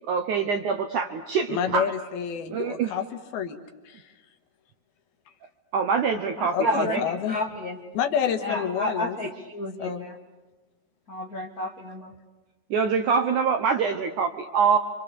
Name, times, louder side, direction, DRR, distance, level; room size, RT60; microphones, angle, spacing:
voice 1, 0.1-1.9 2.5-3.0 5.7-7.0 12.7-14.8, right 6 dB, 70° right, 6 dB, 2.0 m, -24 dB
voice 2, 1.5-3.0 3.3-3.6 3.9-4.0 6.5-7.4 7.9-9.1 9.8-10.1, left 8 dB, 70° left, 7 dB, 3.1 m, -28 dB
voice 3, 6.4-7.8 8.4-10.2 11.1-12.1, left 1 dB, 50° left, 0 dB, 1.0 m, -31 dB
29.5 x 26.0 x 6.9 m, 1.2 s
omnidirectional pair, 4.9 m